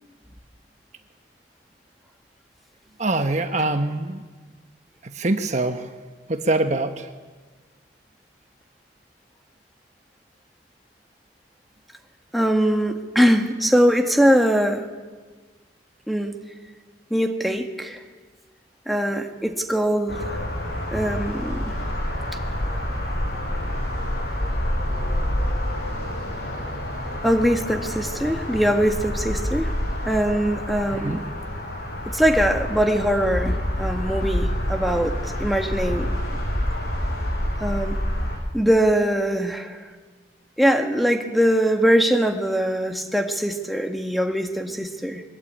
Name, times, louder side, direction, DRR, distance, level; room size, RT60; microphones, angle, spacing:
voice 1, 3.0-4.2 5.0-5.9 6.3-7.1 30.9-31.2, right 2 dB, 40° right, 7 dB, 1.2 m, -24 dB
voice 2, 12.3-14.8 16.1-16.4 17.1-18.0 18.9-20.2 20.9-21.6 27.2-29.7 30.1-31.2 32.1-35.1 35.4-36.2 37.6-38.0 38.5-39.8 40.6-45.2, equal, ahead, 3 dB, 1.7 m, -22 dB
sound 1, 20.1-38.4, equal, 60° left, 7.1 m, -27 dB
23.0 x 21.0 x 8.9 m, 1.4 s
head